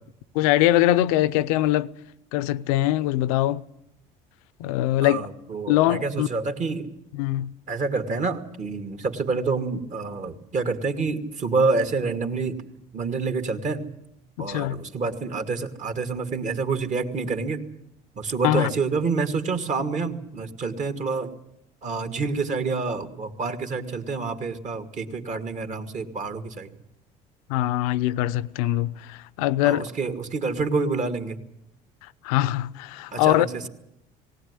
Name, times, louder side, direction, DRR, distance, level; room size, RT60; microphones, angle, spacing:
voice 1, 0.3-1.9 2.3-3.6 4.6-5.3 5.7-6.3 7.1-7.5 14.4-14.8 18.4-18.7 27.5-29.9 32.2-33.5, left 14 dB, 85° left, 0.7 m, -22 dB
voice 2, 5.0-6.9 7.7-12.6 12.9-13.9 14.4-17.6 18.2-21.3 21.8-26.7 29.6-31.4 33.1-33.7, right 4 dB, 40° right, 2.5 m, -27 dB
18.5 x 18.0 x 9.8 m
supercardioid pair, 85°, 18 cm